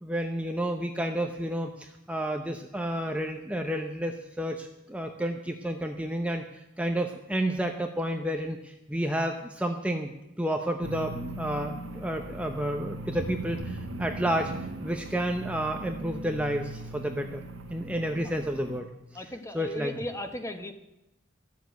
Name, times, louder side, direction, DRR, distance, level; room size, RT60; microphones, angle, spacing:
voice 1, 0.0-14.5 14.8-17.4 17.7-18.9 19.5-19.9, right 1 dB, 5° right, 4 dB, 0.7 m, -31 dB
sound 1, 10.8-18.8, right 1 dB, 80° right, 1.7 m, -39 dB
voice 2, 19.1-20.7, left 1 dB, 15° left, 7 dB, 1.1 m, -36 dB
13.0 x 7.4 x 9.2 m, 0.94 s
head